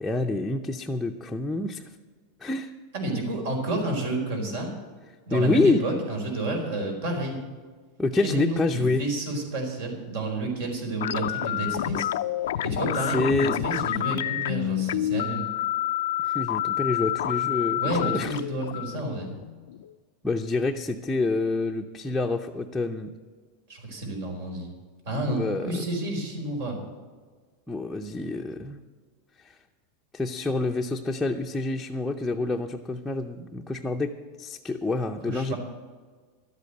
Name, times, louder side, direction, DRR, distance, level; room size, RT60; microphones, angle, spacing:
voice 1, 0.0-1.8 2.4-2.7 5.3-5.8 8.0-9.1 12.6-12.7 13.1-13.5 16.2-18.3 20.2-23.1 25.3-25.7 27.7-28.8 29.4-29.6 30.1-35.5, left 2 dB, 5° left, -1 dB, 0.6 m, -27 dB
voice 2, 2.9-4.7 5.3-7.4 8.2-12.1 12.6-15.5 17.8-19.4 23.7-24.7 25.0-26.8 35.2-35.6, right 2 dB, 70° right, 2 dB, 4.4 m, -30 dB
sound 1, 11.0-19.9, left 13 dB, 85° left, 0.4 m, -28 dB
12.5 x 8.3 x 7.7 m, 1.5 s
supercardioid pair, 145°, 0 cm